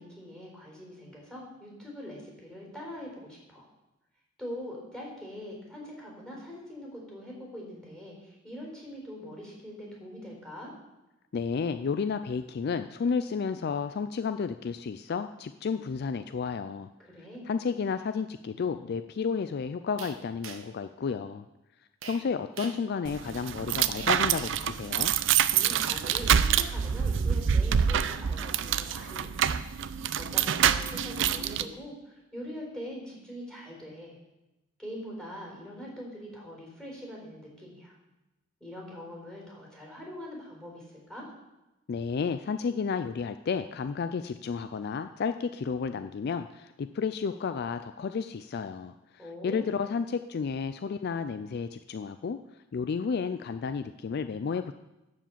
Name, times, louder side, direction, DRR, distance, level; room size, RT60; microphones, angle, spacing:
voice 1, 0.0-3.7 4.4-10.7 17.0-17.5 25.5-29.8 30.1-34.2 34.8-37.9 38.6-41.3 49.2-49.8, equal, 5° left, -2 dB, 4.1 m, -43 dB
voice 2, 11.3-16.9 17.5-21.5 22.0-25.1 41.9-52.4 52.7-54.7, left 5 dB, 50° left, 10 dB, 0.3 m, -32 dB
sound 1, 20.0-20.8 22.0-22.3 22.6-22.9 24.0-24.7 25.7-26.3, right 6 dB, 80° right, 1.0 m, -43 dB
sound 2, 23.0-31.6, right 8 dB, 65° right, 0.4 m, -26 dB
12.0 x 5.0 x 7.4 m, 0.99 s
head